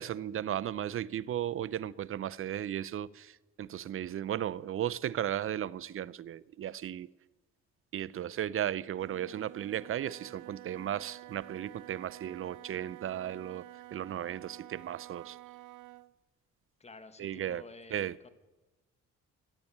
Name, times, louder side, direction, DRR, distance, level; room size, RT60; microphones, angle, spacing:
voice 1, 0.0-7.1 7.9-15.4 17.2-17.6 17.9-18.2, right 11 dB, 45° right, 0.5 m, -35 dB
Wind instrument woodwind instrument, 8.9-16.1, right 15 dB, 85° right, 0.6 m, -50 dB
voice 2, 16.8-18.3, left 3 dB, 20° left, 1.3 m, -51 dB
13.5 x 8.8 x 8.5 m
cardioid pair, 90°, 30 cm